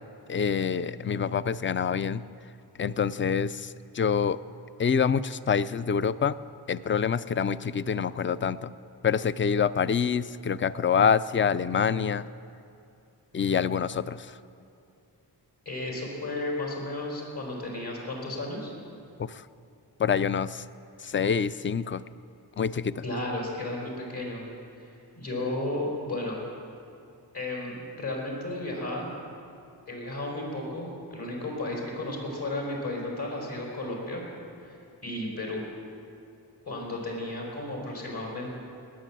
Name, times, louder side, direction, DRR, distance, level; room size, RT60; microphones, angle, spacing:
voice 1, 0.3-2.2 2.8-4.4 4.8-6.4 6.7-8.7 9.0-12.2 13.3-14.4 19.2-19.5 20.0-20.6 21.0-22.0 22.6-23.0, left 6 dB, 30° left, 16 dB, 0.4 m, -26 dB
voice 2, 15.6-18.7 23.0-24.4 24.8-26.4 27.3-29.1 29.9-34.3 34.6-34.8 35.0-35.6 36.7-38.5, left 2 dB, 60° left, -1 dB, 4.9 m, -33 dB
19.0 x 9.2 x 7.5 m, 2.6 s
wide cardioid pair, 80°, 42 cm